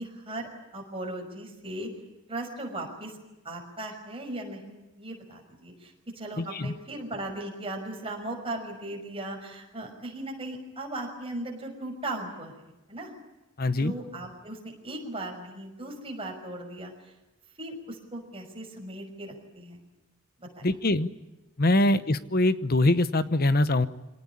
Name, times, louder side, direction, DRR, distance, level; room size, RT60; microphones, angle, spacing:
voice 1, 0.0-1.9 2.3-3.1 3.4-12.5 12.9-13.1 13.8-16.9 17.6-19.8 20.4-20.6 21.8-21.9, right 1 dB, 25° right, 2 dB, 6.0 m, -38 dB
voice 2, 6.4-6.7 13.6-13.9 20.6-21.1 21.6-23.9, left 2 dB, 45° left, 13 dB, 1.0 m, -23 dB
25.5 x 18.5 x 9.8 m, 1.0 s
head